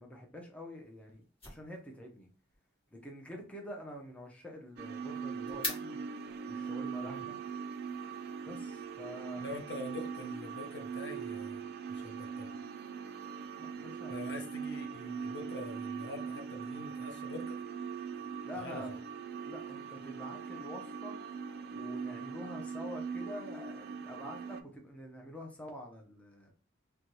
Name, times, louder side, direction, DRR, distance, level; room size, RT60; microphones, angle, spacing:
voice 1, 0.0-2.3 2.9-6.0 6.5-7.4 8.5-9.4 13.6-14.2 18.4-19.0 19.4-21.2 21.7-26.5, equal, 5° left, 0.5 m, -47 dB
sound 1, 0.8-6.6, left 2 dB, 30° left, 1.1 m, -46 dB
sound 2, 4.8-24.6, right 6 dB, 50° right, 0.4 m, -41 dB
voice 2, 9.4-11.6 11.9-12.5 14.1-17.6 18.6-18.8, left 1 dB, 60° left, 0.7 m, -45 dB
2.6 x 2.2 x 3.0 m
head